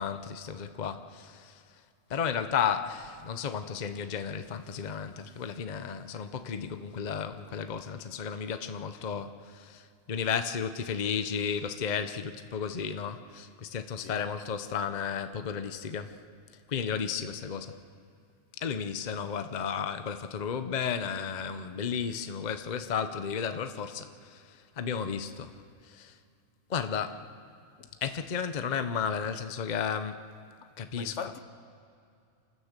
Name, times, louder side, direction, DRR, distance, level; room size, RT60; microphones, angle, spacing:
voice 1, 0.0-1.6 2.1-16.2 16.7-17.7 18.6-25.6 25.8-26.2 26.7-27.3 28.0-30.2 30.8-31.3, left 7 dB, 40° left, 0.8 m, -33 dB
voice 2, 31.0-31.4, left 7 dB, 65° left, 1.2 m, -40 dB
28.5 x 15.5 x 6.7 m
omnidirectional pair, 1.4 m